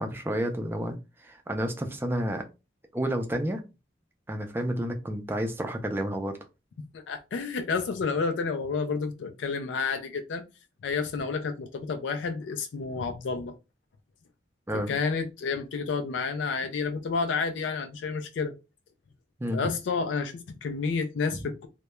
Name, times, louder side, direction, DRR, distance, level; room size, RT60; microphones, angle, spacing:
voice 1, 0.0-2.4 2.9-3.6 4.3-6.4 14.7-14.9 19.4-19.6 21.3-21.4, equal, 10° right, 0.3 m, -30 dB
voice 2, 6.9-10.4 10.8-13.6 14.7-18.6 19.5-21.7, left 4 dB, 75° left, 0.3 m, -30 dB
2.2 x 2.0 x 2.9 m
head